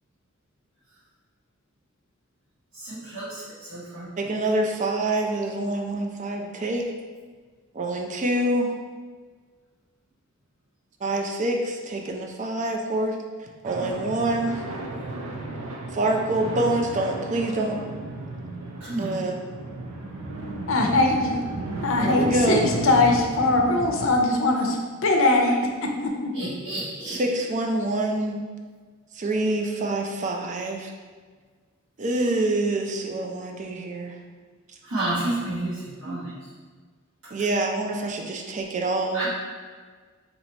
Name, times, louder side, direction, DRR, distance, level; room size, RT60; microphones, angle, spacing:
voice 1, 2.7-4.1 18.8-19.3 26.3-27.2 34.8-36.3 39.1-39.3, right 1 dB, 65° right, -12 dB, 1.2 m, -31 dB
voice 2, 4.2-6.9 7.7-8.7 11.0-14.7 15.9-17.8 19.0-19.4 22.0-22.7 27.1-28.4 29.1-30.9 32.0-34.2 36.0-36.1 37.3-39.3, right 2 dB, 35° right, 1 dB, 0.4 m, -26 dB
sound 1, 13.6-24.1, right 2 dB, 90° right, 0.6 m, -34 dB
voice 3, 20.7-21.4 21.8-24.8 25.0-26.3, left 2 dB, 65° left, 2 dB, 0.5 m, -21 dB
2.9 x 2.8 x 4.4 m, 1.5 s
head